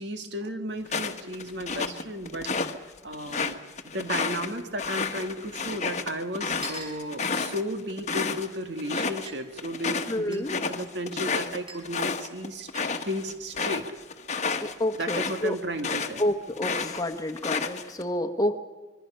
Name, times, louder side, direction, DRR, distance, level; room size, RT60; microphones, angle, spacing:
voice 1, 0.0-3.6 3.9-12.7 13.0-13.9 15.0-16.2, equal, 60° right, 7 dB, 2.0 m, -34 dB
sound 1, 0.9-2.7 3.1-8.5 8.8-9.3 9.6-16.2 16.6-18.0, left 4 dB, 35° left, 1.3 m, -31 dB
sound 2, 4.6-4.7 4.9-5.0 5.9-6.0 6.6-7.0 8.1-8.2 9.3-9.4 10.3-10.5 11.7-11.9 12.8-13.0, right 3 dB, 30° right, 5.8 m, -41 dB
voice 2, 10.1-10.5 14.6-15.6 16.2-18.6, left 1 dB, 20° left, 4 dB, 1.3 m, -29 dB
25.5 x 23.0 x 5.6 m, 1.3 s
head